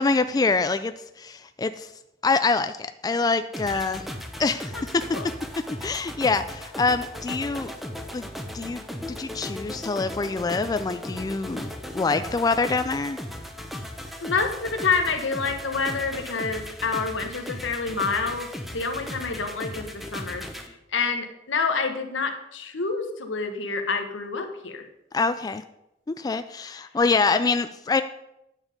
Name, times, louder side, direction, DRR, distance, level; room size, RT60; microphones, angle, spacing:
voice 1, 0.0-1.9 2.2-4.1 4.4-5.2 5.8-7.7 8.1-8.3 8.5-8.8 9.1-11.7 11.9-13.2 25.1-25.6 26.1-28.0, left 4 dB, 20° left, 10 dB, 0.3 m, -25 dB
sound 1, 3.5-20.7, equal, ahead, 0.9 m, -37 dB
voice 2, 14.2-20.4 20.9-24.8, left 4 dB, 85° left, 6 dB, 1.3 m, -28 dB
9.8 x 7.2 x 5.1 m, 0.85 s
head